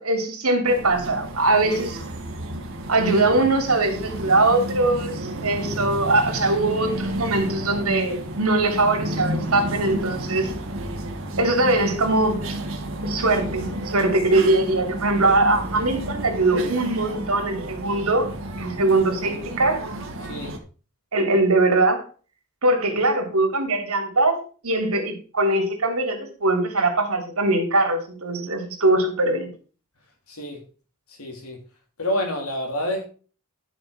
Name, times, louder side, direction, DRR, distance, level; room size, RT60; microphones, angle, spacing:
voice 1, 0.0-2.0 2.9-10.5 11.4-12.6 13.0-18.3 18.6-19.8 21.1-22.0 22.6-24.4 24.6-29.5, right 2 dB, 75° right, 3.2 m, -21 dB
sound 1, 0.7-20.6, right 1 dB, 60° right, 1.9 m, -31 dB
voice 2, 20.2-20.6 30.3-30.6 31.1-31.6 32.0-33.0, left 1 dB, 80° left, 3.5 m, -28 dB
11.0 x 6.2 x 5.2 m
head